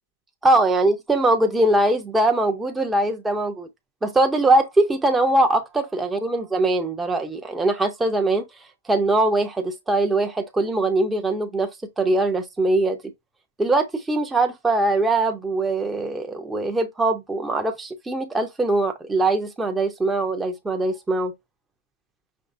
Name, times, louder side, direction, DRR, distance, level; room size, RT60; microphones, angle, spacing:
voice 1, 0.4-3.7 4.0-8.4 8.9-11.7 12.0-13.0 13.6-21.3, right 2 dB, 5° right, 0.5 m, -21 dB
5.3 x 3.2 x 2.6 m
hypercardioid pair, 140°, 0 cm